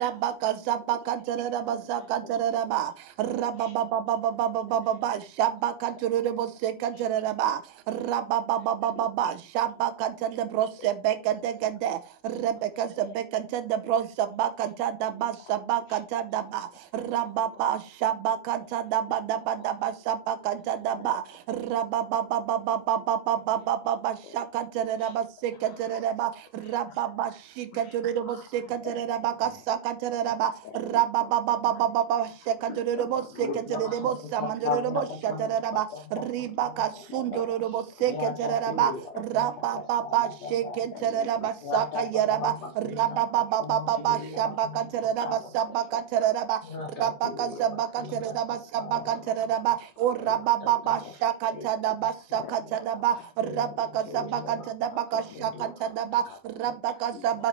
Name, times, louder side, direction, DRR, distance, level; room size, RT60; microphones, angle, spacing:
voice 1, 0.0-2.9 3.2-6.7 7.0-7.6 7.9-10.1 10.4-11.1 11.4-12.0 12.4-12.9 13.5-13.6 13.9-14.0 14.4-14.5 14.8-15.8 16.1-16.4 16.9-21.2 21.5-25.2 25.6-26.3 26.7-27.3 27.9-28.2 28.7-29.8 30.0-30.5 30.8-32.3 32.8-33.2 33.8-35.0 35.5-35.8 36.1-38.1 38.4-38.9 39.3-42.5 43.0-44.7 45.0-45.3 45.5-46.6 47.0-47.9 48.2-48.6 48.9-49.0 49.4-49.8 50.0-52.6 52.9-53.1 53.6-53.9 54.1-54.4 54.8-55.5 56.0-56.2 56.6-57.3, right 10 dB, 80° right, 9 dB, 2.5 m, -27 dB
voice 2, 2.0-2.3 3.5-3.8 4.9-5.2 6.9-7.0 8.9-9.4 10.8-10.9 13.0-13.1 15.4-15.6 15.9-16.0 17.2-17.3 19.6-19.7 21.0-21.2 24.2-24.4 24.9-25.2 25.5-26.1 26.5-26.8 27.0-27.4 27.7-29.0 29.3-29.6 30.3-30.4 30.6-31.3 31.6-31.8 32.4-33.5 34.0-34.1 36.8-36.9 37.3-37.4 38.0-38.2 38.9-39.0 39.4-39.7 40.9-41.5 43.9-44.0 45.2-45.4 45.9-46.0 47.2-47.6 48.5-48.6 48.9-49.3 50.9-51.1 52.3-52.6 53.0-53.3 54.8-55.9 56.3-56.8 57.1-57.3, left 8 dB, 85° left, 6 dB, 1.8 m, -46 dB
voice 3, 33.4-35.5 35.9-36.2 36.6-37.4 37.7-37.8 38.1-39.5 39.7-40.8 41.6-44.8 45.2-45.4 46.6-47.7 48.0-48.4 48.7-49.5 50.2-51.0 51.5-51.6 52.3-52.7 53.4-54.7 55.3-55.7, left 4 dB, 65° left, 2 dB, 1.7 m, -37 dB
8.1 x 5.6 x 4.3 m, 0.33 s
omnidirectional pair, 4.5 m